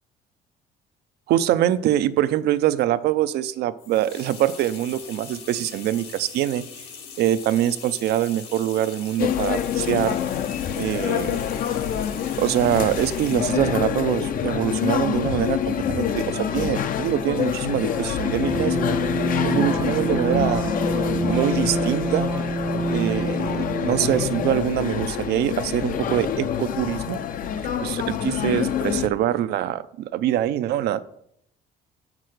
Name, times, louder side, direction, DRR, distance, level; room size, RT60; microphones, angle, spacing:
voice 1, 1.3-6.6 7.2-10.2 10.8-11.4 12.4-18.8 19.4-20.7 21.3-22.3 22.9-27.2 27.6-31.0, right 12 dB, 75° right, 14 dB, 0.6 m, -24 dB
sound 1, 3.8-13.6, left 6 dB, 80° left, 2.0 m, -41 dB
sound 2, 9.2-29.1, left 9 dB, 55° left, 0.7 m, -26 dB
sound 3, 17.8-24.6, right 3 dB, 15° right, 0.5 m, -28 dB
7.5 x 6.1 x 6.5 m, 0.73 s
cardioid pair, 110°, 17 cm